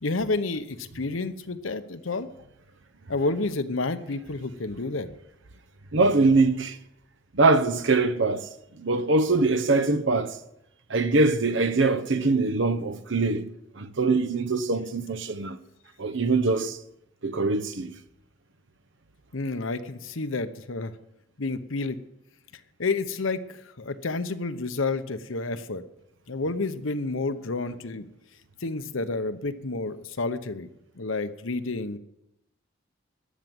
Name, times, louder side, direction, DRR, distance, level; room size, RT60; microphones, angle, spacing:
voice 1, 0.0-2.3 3.1-5.1 19.3-20.9 21.4-22.0 22.8-25.8 26.3-28.1 28.6-30.7 31.0-32.0, left 3 dB, 80° left, 1.0 m, -30 dB
voice 2, 5.9-6.8 7.3-8.5 8.8-10.4 10.9-15.6 16.0-16.8 17.2-17.9, right 3 dB, 65° right, 0.9 m, -23 dB
13.0 x 7.4 x 9.3 m
head